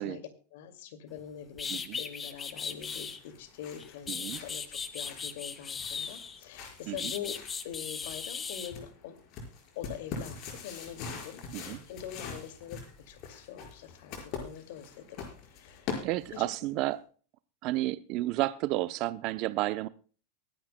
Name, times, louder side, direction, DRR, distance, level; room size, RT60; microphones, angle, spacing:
voice 1, 0.0-7.4 7.6-9.2 9.8-15.9 16.3-16.5, left 9 dB, 65° left, 9 dB, 2.3 m, -44 dB
sound 1, 1.2-1.3 1.6-3.2 3.8-6.4 7.0-8.7, left 6 dB, 20° left, 1.5 m, -37 dB
sound 2, 2.4-16.6, left 5 dB, 50° left, 5.1 m, -44 dB
voice 2, 4.1-4.4 6.9-7.1 11.5-11.8 16.0-17.0 17.6-19.9, right 17 dB, 50° right, 14 dB, 0.6 m, -31 dB
23.5 x 10.5 x 2.2 m, 0.40 s
hypercardioid pair, 110°, 0 cm